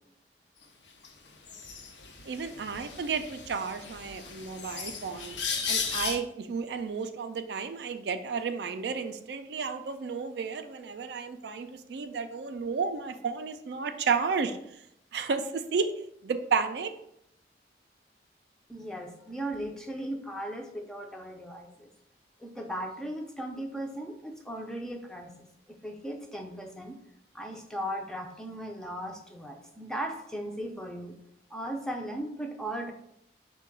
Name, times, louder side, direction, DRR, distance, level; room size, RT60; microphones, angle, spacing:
sound 1, 1.0-1.1 1.5-6.2, left 5 dB, 90° left, 0.6 m, -36 dB
voice 1, 2.2-5.4 5.7-14.6 15.1-15.9 16.2-16.9, right 5 dB, 75° right, 8 dB, 0.4 m, -32 dB
voice 2, 18.7-21.9 22.4-27.0 27.3-31.2 31.5-32.9, right 1 dB, 5° left, 2 dB, 0.4 m, -37 dB
4.6 x 2.2 x 4.7 m, 0.76 s
head